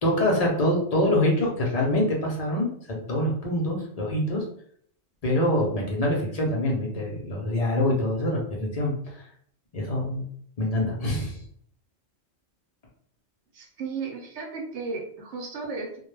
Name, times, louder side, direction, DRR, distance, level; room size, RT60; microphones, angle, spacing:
voice 1, 0.0-4.4 5.2-9.2 9.7-10.2 10.6-11.4, left 1 dB, 50° left, -2 dB, 0.4 m, -25 dB
voice 2, 13.5-16.1, right 4 dB, 70° right, 1 dB, 0.9 m, -34 dB
2.2 x 2.2 x 3.1 m, 0.62 s
omnidirectional pair, 1.3 m